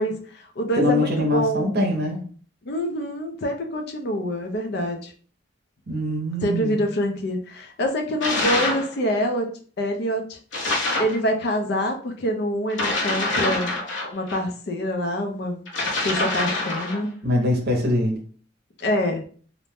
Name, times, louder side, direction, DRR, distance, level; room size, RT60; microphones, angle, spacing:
voice 1, 0.0-1.7 2.6-5.1 6.4-9.5 9.8-10.4 11.0-13.7 14.1-15.6 16.0-17.1 18.8-19.2, equal, 60° left, 4 dB, 0.4 m, -25 dB
voice 2, 0.8-2.2 5.9-6.8 17.2-18.2, left 1 dB, 55° right, 1 dB, 0.7 m, -23 dB
sound 1, 8.2-8.9 10.5-11.2 12.7-14.4 15.7-17.0, left 2 dB, 85° left, 1.0 m, -25 dB
2.6 x 2.1 x 3.3 m, 0.43 s
head